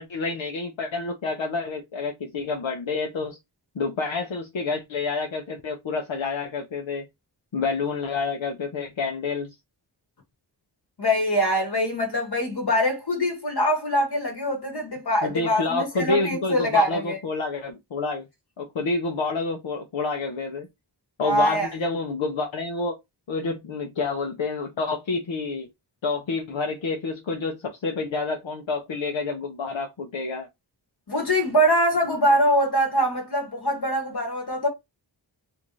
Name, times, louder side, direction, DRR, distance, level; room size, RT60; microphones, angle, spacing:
voice 1, 0.0-3.4 3.8-7.1 7.5-9.5 15.2-18.3 18.6-20.7 21.2-23.0 23.3-25.7 26.0-30.5, left 4 dB, 85° left, 0.8 m, -28 dB
voice 2, 11.0-17.2 21.2-21.7 31.1-34.7, equal, 55° left, 1.1 m, -23 dB
3.4 x 2.6 x 3.0 m
wide cardioid pair, 55°, 45 cm